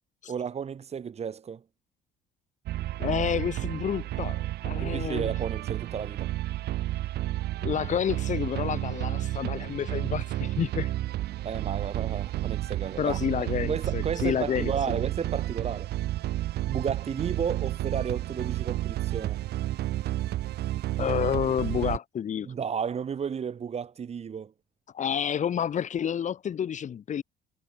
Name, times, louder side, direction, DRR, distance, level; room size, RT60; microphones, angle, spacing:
voice 1, 0.3-1.6 4.8-6.3 11.4-15.9 16.7-19.4 22.4-24.5, right 7 dB, 40° right, 2.7 m, -33 dB
sound 1, 2.7-22.0, right 15 dB, 75° right, 4.6 m, -31 dB
voice 2, 3.0-5.3 7.6-10.9 13.0-15.0 21.0-22.5 24.9-27.2, left 8 dB, 45° left, 2.4 m, -29 dB
cardioid pair, 110°, 17 cm